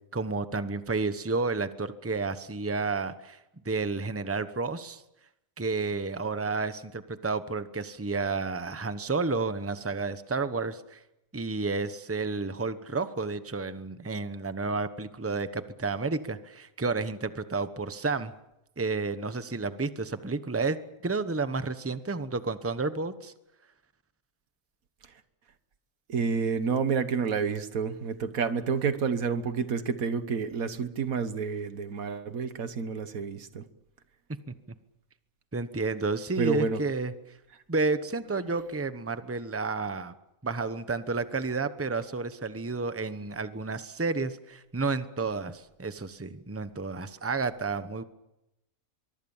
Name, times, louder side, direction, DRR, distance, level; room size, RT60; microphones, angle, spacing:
voice 1, 0.1-3.4 3.6-5.0 5.6-11.0 11.3-18.3 18.8-20.8 21.0-23.3 35.5-37.1 37.7-40.1 40.4-48.0, right 3 dB, 10° right, 11 dB, 0.9 m, -31 dB
voice 2, 26.1-33.6 36.4-36.8, right 5 dB, 90° right, 11 dB, 1.8 m, -29 dB
23.5 x 23.5 x 7.3 m, 0.88 s
omnidirectional pair, 1.4 m